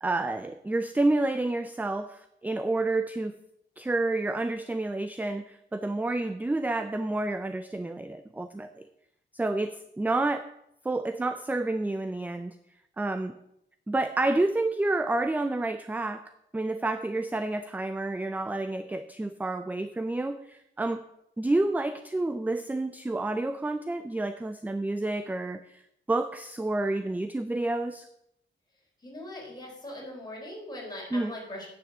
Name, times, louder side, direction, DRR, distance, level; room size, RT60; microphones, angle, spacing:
voice 1, 0.0-3.4 3.8-8.9 9.3-10.5 10.8-12.6 13.0-13.3 13.9-21.0 21.4-25.8 26.1-28.1 31.1-31.3, right 2 dB, 10° right, 10 dB, 0.4 m, -29 dB
voice 2, 29.0-31.7, left 1 dB, 20° left, -3 dB, 4.1 m, -40 dB
9.7 x 6.1 x 7.2 m, 0.79 s
wide cardioid pair, 140°, 20 cm